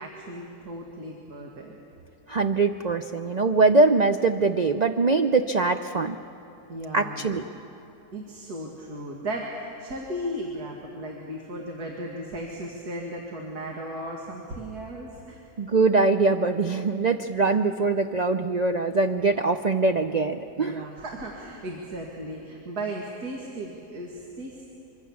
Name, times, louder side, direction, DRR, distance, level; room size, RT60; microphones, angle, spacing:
voice 1, 0.0-1.8 6.7-7.4 8.1-15.4 20.6-24.7, right 1 dB, 85° right, 0 dB, 2.5 m, -36 dB
voice 2, 2.3-6.2 6.9-7.4 15.6-20.8, right 3 dB, 70° right, 7 dB, 0.4 m, -22 dB
25.0 x 24.0 x 7.2 m, 2.9 s
omnidirectional pair, 1.6 m